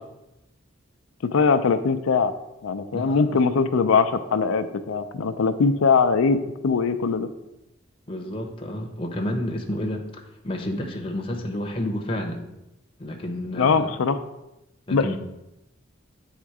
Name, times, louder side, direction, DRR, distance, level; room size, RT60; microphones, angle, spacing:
voice 1, 1.2-2.3 2.6-7.3 13.6-14.2 14.9-15.2, left 5 dB, 85° left, 8 dB, 0.4 m, -21 dB
voice 2, 8.1-10.0 10.4-12.4 13.0-13.9 14.9-15.2, left 1 dB, 25° left, 2 dB, 0.8 m, -30 dB
8.6 x 3.6 x 4.8 m, 0.91 s
head